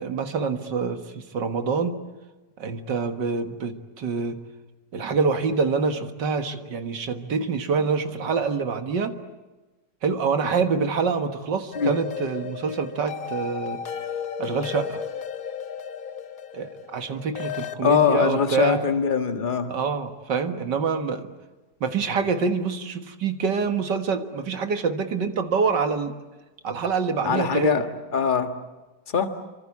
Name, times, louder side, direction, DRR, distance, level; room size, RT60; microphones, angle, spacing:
voice 1, 0.0-2.0 2.6-4.4 4.9-9.1 10.0-13.8 14.4-15.0 16.5-18.8 19.7-21.3 21.8-26.1 26.6-27.8, right 5 dB, 80° right, 8 dB, 2.3 m, -26 dB
sound 1, 11.7-17.7, left 7 dB, 55° left, 1.6 m, -34 dB
voice 2, 17.8-19.7 27.3-28.5 29.1-29.3, left 6 dB, 30° left, 7 dB, 1.7 m, -22 dB
27.5 x 24.5 x 8.5 m, 1.1 s
omnidirectional pair, 1.9 m